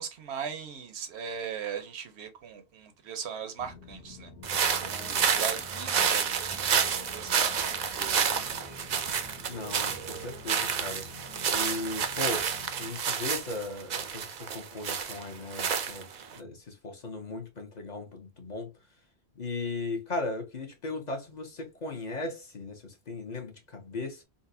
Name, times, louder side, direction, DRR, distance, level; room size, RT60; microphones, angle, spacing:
voice 1, 0.0-4.3 4.9-8.3, right 7 dB, 80° right, 1.0 m, -39 dB
sound 1, 3.6-13.0, left 2 dB, 75° left, 1.6 m, -48 dB
sound 2, 4.4-16.4, right 7 dB, 55° right, 0.5 m, -29 dB
voice 2, 9.5-11.1 11.5-12.5 12.8-18.7 19.4-24.2, left 2 dB, 45° left, 0.8 m, -37 dB
3.9 x 2.1 x 2.6 m
omnidirectional pair, 1.1 m